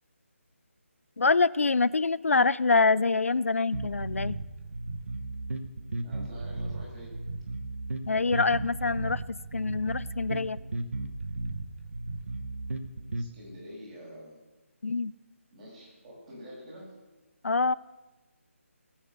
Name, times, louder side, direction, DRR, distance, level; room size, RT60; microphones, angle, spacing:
voice 1, 1.2-4.4 8.1-9.2 9.5-10.6 14.8-15.1 17.4-17.7, left 4 dB, 70° left, 18 dB, 0.4 m, -25 dB
sound 1, 3.7-13.3, right 2 dB, 65° right, 1.0 m, -35 dB
voice 2, 6.0-7.1 13.2-14.4 15.5-16.9, equal, 30° right, -4 dB, 6.0 m, -47 dB
18.0 x 7.3 x 6.8 m, 1.2 s
figure-of-eight pair, 155°, 8 cm